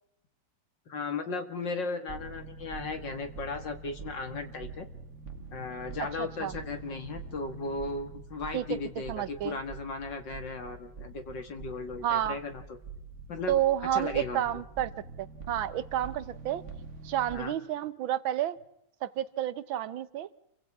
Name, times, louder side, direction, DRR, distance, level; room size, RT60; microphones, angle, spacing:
voice 1, 0.9-4.9 5.5-12.6 13.3-13.6 13.9-14.5 17.3-17.5, left 3 dB, 65° left, 6 dB, 2.4 m, -36 dB
sound 1, 2.1-17.4, right 4 dB, 40° right, 1.7 m, -45 dB
voice 2, 6.2-6.5 8.5-8.6 9.1-9.6 12.0-12.4 13.5-14.9 15.2-16.6 17.0-18.6 19.0-20.3, right 11 dB, 75° right, 14 dB, 1.7 m, -30 dB
29.5 x 24.5 x 3.6 m, 0.81 s
omnidirectional pair, 2.2 m